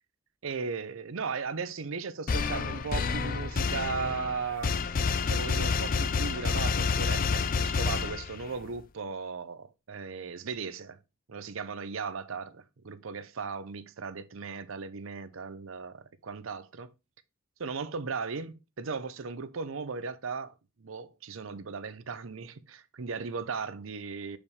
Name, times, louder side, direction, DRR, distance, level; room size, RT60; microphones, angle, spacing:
voice 1, 0.4-4.7 5.3-11.0 11.3-16.9 17.6-24.4, right 5 dB, 75° right, 0.6 m, -37 dB
sound 1, 2.3-8.6, left 5 dB, 40° left, 0.4 m, -29 dB
7.0 x 5.1 x 3.2 m
head